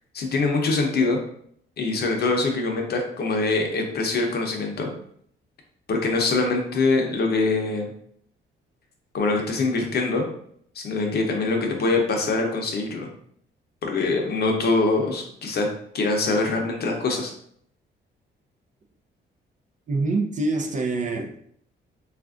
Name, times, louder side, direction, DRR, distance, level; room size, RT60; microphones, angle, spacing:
voice 1, 0.1-1.2 1.8-4.9 5.9-7.9 9.1-10.3 10.7-13.1 13.8-15.7 15.9-17.3, left 3 dB, 55° left, 2 dB, 0.7 m, -23 dB
voice 2, 19.9-21.4, right 3 dB, 40° right, 3 dB, 0.5 m, -25 dB
3.3 x 2.5 x 2.4 m, 0.66 s
cardioid pair, 90°, 20 cm